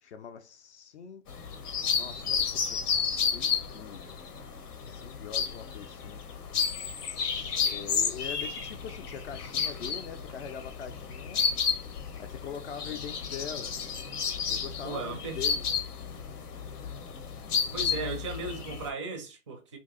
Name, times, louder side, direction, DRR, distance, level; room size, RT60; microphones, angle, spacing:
voice 1, 0.0-1.2 1.9-4.1 4.9-6.2 7.1-11.4 12.2-13.7 14.5-15.6, left 7 dB, 50° left, 0.5 m, -43 dB
sound 1, 1.3-18.9, left 6 dB, 90° left, 0.9 m, -32 dB
voice 2, 14.8-15.4 17.7-19.8, right 4 dB, 20° right, 0.4 m, -36 dB
2.9 x 2.6 x 3.6 m
hypercardioid pair, 150°, 45 cm